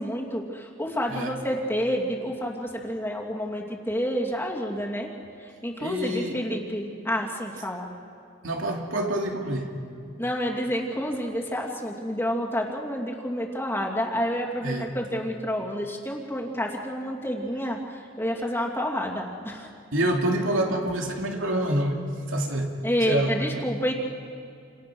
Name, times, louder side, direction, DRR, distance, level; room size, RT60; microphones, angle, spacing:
voice 1, 0.0-5.1 5.4-7.9 10.2-19.7 22.8-23.9, equal, 10° left, -1 dB, 2.7 m, -29 dB
voice 2, 5.8-6.4 8.4-9.7 14.6-15.0 19.9-22.8 23.1-23.7, right 1 dB, 85° right, 1 dB, 2.9 m, -27 dB
29.0 x 27.5 x 6.3 m, 2.5 s
head